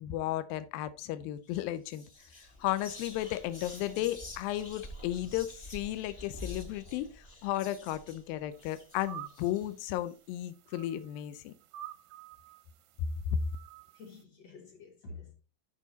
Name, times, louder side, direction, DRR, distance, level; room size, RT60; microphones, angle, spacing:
voice 1, 0.0-2.0 2.4-11.5 13.3-13.4, left 13 dB, 90° left, 2.4 m, -34 dB
Whispering, 1.4-1.6 1.9-10.0, left 2 dB, 40° left, 0.8 m, -48 dB
sound 1, 8.5-14.2, right 12 dB, 75° right, 1.7 m, -50 dB
voice 2, 13.9-15.3, left 3 dB, 60° left, 2.0 m, -49 dB
9.2 x 5.7 x 3.9 m
omnidirectional pair, 4.1 m